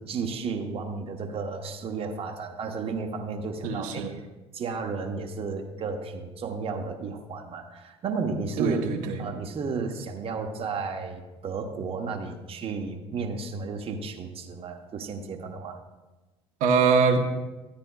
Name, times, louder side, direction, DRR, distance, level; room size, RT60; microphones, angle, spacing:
voice 1, 0.0-4.0 4.5-8.8 9.2-15.8, right 4 dB, 45° right, 3 dB, 1.0 m, -33 dB
voice 2, 3.6-4.1 8.6-9.3 16.6-17.2, right 5 dB, 70° right, 2 dB, 1.1 m, -23 dB
13.0 x 9.5 x 2.3 m, 1.1 s
hypercardioid pair, 65°, 14 cm